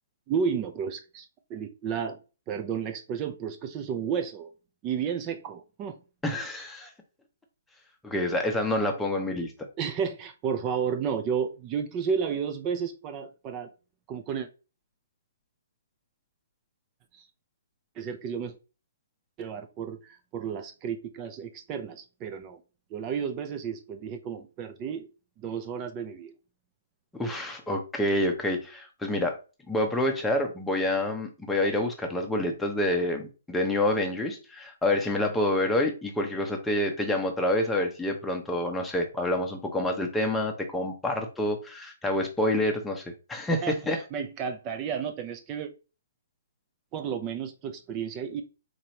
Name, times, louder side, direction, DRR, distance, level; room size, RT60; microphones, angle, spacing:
voice 1, 0.3-2.2 2.5-4.5 4.8-6.0 9.8-13.7 14.1-14.5 17.1-17.2 18.0-18.5 19.4-22.6 22.9-25.1 25.4-26.3 43.6-45.7 46.9-48.4, right 7 dB, 25° right, 0.5 m, -32 dB
voice 2, 6.2-6.9 8.0-9.5 27.1-29.4 29.7-44.0, left 1 dB, 5° left, 0.7 m, -27 dB
3.9 x 3.0 x 2.8 m
hypercardioid pair, 145°, 0 cm